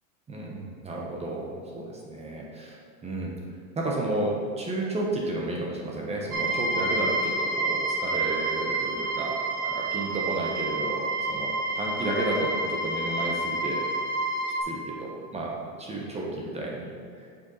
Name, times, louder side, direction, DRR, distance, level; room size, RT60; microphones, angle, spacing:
voice 1, 0.3-2.8 3.0-3.3 3.7-11.0 11.3-13.8 14.6-16.9, right 2 dB, 15° right, -2 dB, 1.0 m, -32 dB
sound 1, 6.3-14.6, right 2 dB, 85° right, 1.5 m, -29 dB
8.0 x 5.6 x 4.0 m, 2.3 s
supercardioid pair, 140°, 44 cm